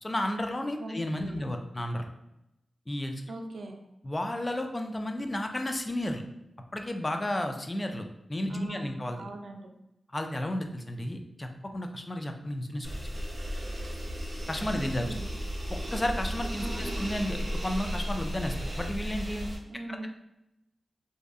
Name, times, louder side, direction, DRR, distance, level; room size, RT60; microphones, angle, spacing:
voice 1, 0.0-2.1 2.9-3.2 4.0-6.2 6.7-9.3 10.1-12.9 14.5-15.1 15.7-17.4 17.6-19.5, left 1 dB, 25° left, 5 dB, 0.3 m, -32 dB
voice 2, 0.8-1.6 3.3-3.8 8.5-9.7 14.7-15.3 16.6-17.0 19.7-20.1, right 2 dB, 75° right, 2 dB, 0.4 m, -41 dB
sound 1, 12.8-19.6, equal, 35° right, 0.7 m, -34 dB
2.6 x 2.4 x 2.3 m, 0.88 s
wide cardioid pair, 80°, 0 cm